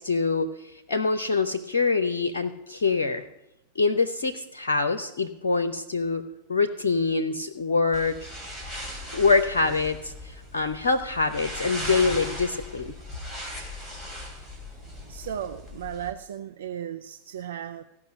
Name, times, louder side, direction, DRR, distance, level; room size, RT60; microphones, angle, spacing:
voice 1, 0.0-3.3 3.8-6.2 6.5-8.2 9.1-12.9, left 4 dB, 65° left, 9 dB, 0.7 m, -25 dB
sound 1, 7.9-16.1, equal, 5° right, 3.3 m, -38 dB
voice 2, 15.1-17.8, right 9 dB, 60° right, 8 dB, 0.5 m, -35 dB
15.5 x 5.9 x 9.0 m, 0.91 s
figure-of-eight pair, 90°, 0 cm